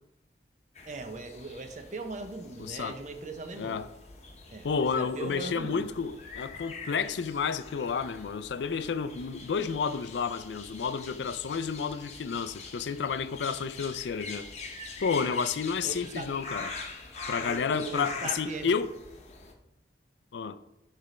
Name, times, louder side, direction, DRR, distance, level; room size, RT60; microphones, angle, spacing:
sound 1, 0.7-19.5, left 4 dB, 40° left, 0.8 m, -44 dB
voice 1, 0.9-3.7 4.5-5.9 15.8-16.3 17.4-18.7, right 3 dB, 40° right, 0.6 m, -39 dB
voice 2, 2.6-3.0 3.6-3.9 4.6-14.5 15.0-16.7 17.3-18.9 20.3-20.6, left 5 dB, 80° left, 0.4 m, -31 dB
6.7 x 3.3 x 5.1 m
head